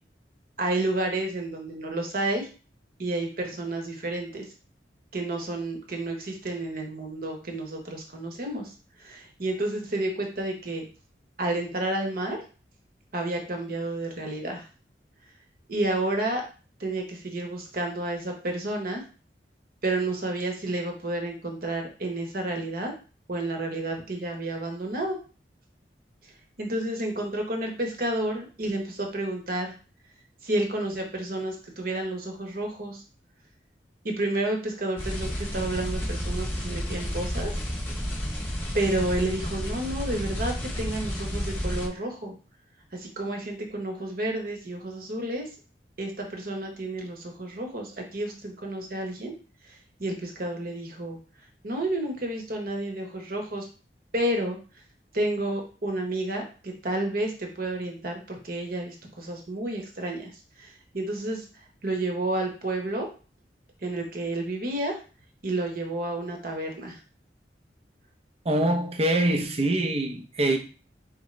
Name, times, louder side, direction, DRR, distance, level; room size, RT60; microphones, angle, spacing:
voice 1, 0.6-2.5 3.0-4.5 5.1-8.7 9.0-10.8 11.4-12.4 13.1-14.7 15.7-16.4 16.8-19.0 19.8-22.9 23.3-25.2 26.6-29.7 30.4-33.0 34.0-37.5 38.7-42.3 42.9-45.5 46.0-49.3 50.0-51.2 51.6-53.6 54.1-54.6 55.1-60.3 60.6-61.4 61.8-63.1 63.8-65.0 65.4-67.0, right 1 dB, 55° right, 1.1 m, -30 dB
sound 1, 35.0-41.9, equal, 10° left, 1.0 m, -31 dB
voice 2, 68.4-70.6, right 1 dB, 35° right, 0.6 m, -24 dB
4.2 x 3.7 x 3.3 m
head